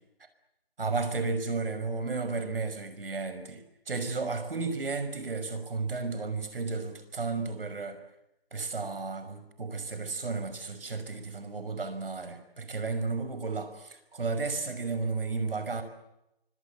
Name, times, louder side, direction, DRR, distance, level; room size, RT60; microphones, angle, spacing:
voice 1, 0.8-8.0 8.5-15.8, right 4 dB, 65° right, 5.7 m, -33 dB
27.0 x 25.0 x 7.1 m
hypercardioid pair, 170°, 30 cm